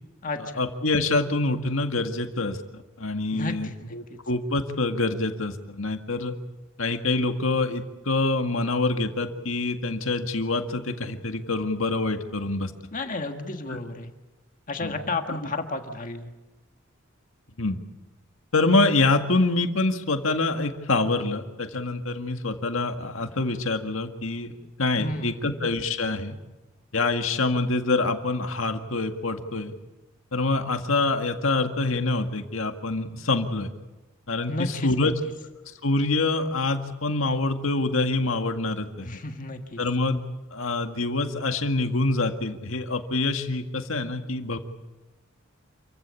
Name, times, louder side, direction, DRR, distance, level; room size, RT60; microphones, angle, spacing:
voice 1, 0.5-6.3 6.8-12.7 13.7-13.8 14.8-15.0 17.6-17.8 18.5-24.5 24.8-26.4 26.9-29.7 30.3-33.7 34.3-35.1 35.8-39.2 39.8-40.2 40.5-44.6, left 2 dB, 75° left, 6 dB, 2.0 m, -26 dB
voice 2, 3.3-4.2 12.9-14.1 14.7-16.3 25.0-25.5 34.5-35.1 39.0-39.8, left 2 dB, 40° left, 5 dB, 1.7 m, -32 dB
28.0 x 15.5 x 8.6 m, 1.1 s
head